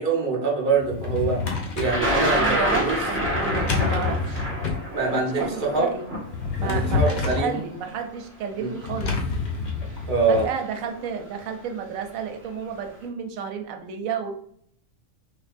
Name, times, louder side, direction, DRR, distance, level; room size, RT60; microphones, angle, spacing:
voice 1, 0.0-1.4 1.7-3.0 4.9-5.4 5.7-5.9 6.6-7.6 8.6-8.7 10.1-10.5, right 4 dB, 45° right, -1 dB, 0.9 m, -24 dB
Drawer open or close, 0.7-2.1 3.2-4.9 6.2-7.5 8.8-10.5, left 4 dB, 50° left, 0.6 m, -27 dB
Thunder, 1.8-7.8 8.8-8.9 10.0-10.2 10.5-11.0, equal, 10° right, 1.1 m, -27 dB
voice 2, 2.3-4.5 5.0-6.0 6.6-9.2 10.3-14.3, right 7 dB, 85° right, 5 dB, 1.0 m, -32 dB
3.2 x 3.2 x 2.5 m, 0.65 s
omnidirectional pair, 1.4 m